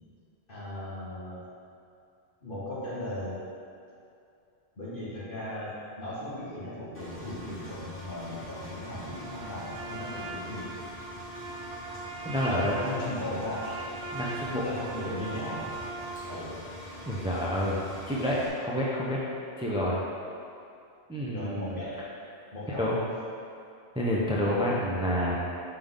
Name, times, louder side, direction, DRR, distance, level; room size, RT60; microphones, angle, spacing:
voice 1, 0.5-1.4 2.4-3.4 4.8-10.7 12.7-13.7 14.6-15.7 16.3-16.9 21.3-22.1 22.5-22.9, left 1 dB, 50° left, -9 dB, 1.8 m, -37 dB
Engine, 6.9-18.5, left 1 dB, 10° left, 1.1 m, -44 dB
Trumpet, 9.0-16.3, right 3 dB, 75° right, 1.0 m, -40 dB
voice 2, 12.2-12.8 14.1-14.6 17.1-19.2 19.6-20.0 21.1-21.7 22.8-23.0 23.9-25.4, equal, 5° right, -6 dB, 0.5 m, -28 dB
5.8 x 5.2 x 3.7 m, 2.5 s
omnidirectional pair, 1.1 m